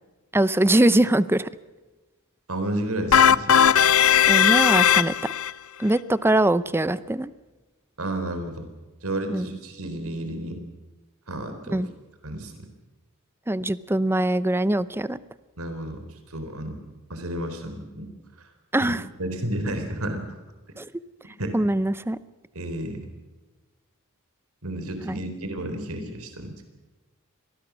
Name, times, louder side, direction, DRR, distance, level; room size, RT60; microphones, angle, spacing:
voice 1, 0.3-1.5 4.3-5.1 5.8-7.3 9.3-9.5 11.7-11.9 13.5-15.2 18.7-19.0 20.8-20.9 21.5-22.2 25.1-25.2, right 1 dB, 10° right, 16 dB, 0.6 m, -22 dB
voice 2, 2.5-3.6 8.0-8.7 9.0-10.6 11.3-11.9 12.2-12.6 15.6-16.0 16.3-16.8 17.1-18.1 18.8-20.2 21.4-21.5 22.5-23.1 24.6-26.7, right 1 dB, 85° right, 7 dB, 3.9 m, -31 dB
sound 1, 3.1-5.5, left 8 dB, 70° left, 0.7 m, -17 dB
25.5 x 19.0 x 6.2 m, 1.2 s
head